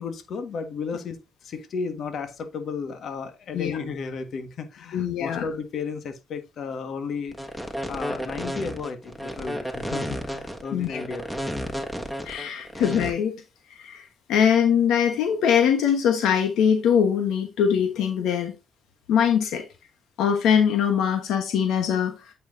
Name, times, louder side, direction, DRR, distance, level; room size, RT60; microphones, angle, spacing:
voice 1, 0.0-11.4, left 5 dB, 65° left, 1.5 m, -34 dB
voice 2, 4.9-5.5 10.7-11.0 12.2-13.3 13.7-18.5 19.1-19.6 20.2-22.1, left 8 dB, 85° left, 1.2 m, -22 dB
sound 1, 7.3-13.1, equal, 5° left, 1.6 m, -32 dB
8.4 x 5.6 x 2.7 m
cardioid pair, 90°, 0 cm